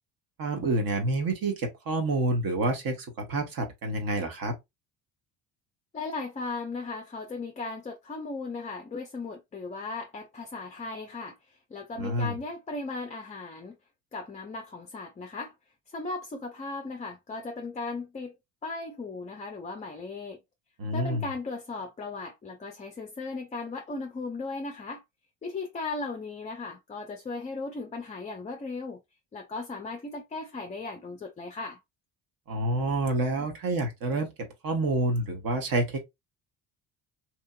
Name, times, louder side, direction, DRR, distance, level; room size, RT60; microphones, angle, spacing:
voice 1, 0.4-4.5 12.0-12.3 20.8-21.2 32.5-36.0, right 2 dB, 45° right, 1.2 m, -28 dB
voice 2, 5.9-13.8 14.1-15.5 15.9-18.3 18.6-20.4 20.9-25.0 25.4-29.0 29.3-31.8, left 3 dB, 15° left, 0.5 m, -37 dB
2.9 x 2.6 x 2.3 m
hypercardioid pair, 60°, 47 cm